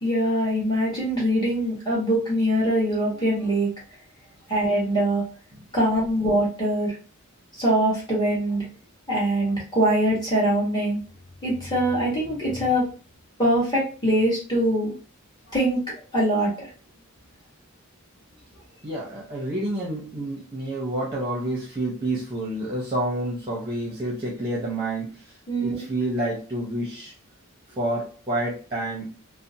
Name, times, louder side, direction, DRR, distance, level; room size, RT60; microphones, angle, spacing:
voice 1, 0.0-3.7 4.5-5.2 5.7-7.0 7.6-8.7 9.1-11.0 11.4-12.9 13.4-14.9 15.5-15.8 16.1-16.7 25.5-25.8, right 1 dB, 20° left, 1.2 m, -23 dB
voice 2, 18.8-25.2 25.6-27.1 27.8-29.1, right 1 dB, 25° right, 0.7 m, -29 dB
2.6 x 2.0 x 2.7 m
head